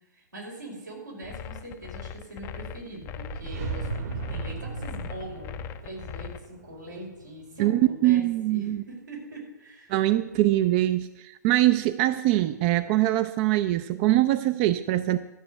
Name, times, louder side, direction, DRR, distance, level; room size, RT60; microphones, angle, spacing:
voice 1, 0.1-5.5 5.8-9.9 10.4-10.6, right 1 dB, 90° right, -2 dB, 5.1 m, -42 dB
sound 1, 1.2-6.5, left 8 dB, 25° left, 0.5 m, -39 dB
sound 2, 2.8-7.9, right 4 dB, 60° right, 1.9 m, -37 dB
voice 2, 7.6-8.8 9.9-15.2, right 15 dB, 35° right, 12 dB, 0.5 m, -23 dB
12.5 x 6.8 x 8.1 m, 0.99 s
figure-of-eight pair, 115°, 10 cm